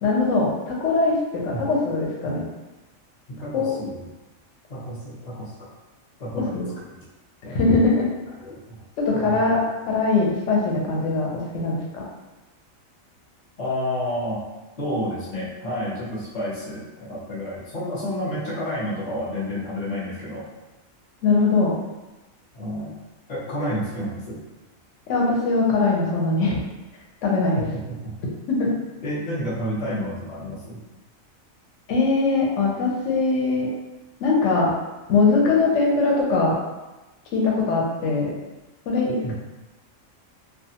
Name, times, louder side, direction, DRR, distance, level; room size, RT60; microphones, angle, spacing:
voice 1, 0.0-2.4 3.5-3.7 6.4-6.7 7.5-8.1 9.0-12.1 21.2-21.7 25.1-26.6 27.2-27.7 28.5-28.7 31.9-33.7 34.2-34.7 35.1-36.6 37.3-38.4 38.9-39.3, left 3 dB, 65° left, -3 dB, 1.0 m, -21 dB
voice 2, 3.3-4.1 4.7-5.5 6.2-6.6 7.4-7.8 8.4-8.8 9.1-9.5 11.5-11.7 13.6-14.5 14.8-20.5 22.5-23.0 23.3-24.4 27.5-28.1 29.0-30.8 39.2-39.3, equal, 40° left, -6 dB, 0.7 m, -30 dB
2.4 x 2.3 x 2.8 m, 1.1 s
omnidirectional pair, 1.4 m